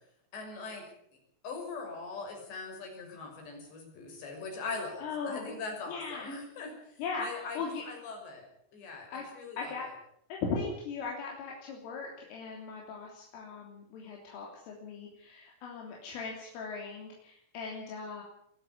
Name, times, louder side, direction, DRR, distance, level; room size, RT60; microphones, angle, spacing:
voice 1, 0.3-0.8 1.4-8.5 8.7-9.9, left 4 dB, 60° left, 2 dB, 8.2 m, -41 dB
voice 2, 5.0-5.6 5.9-6.4 7.0-7.3 7.6-7.8 9.1-9.2 9.6-9.9 10.3-18.2, left 5 dB, 75° left, -1 dB, 5.8 m, -38 dB
23.0 x 12.5 x 9.6 m, 0.70 s
omnidirectional pair, 5.8 m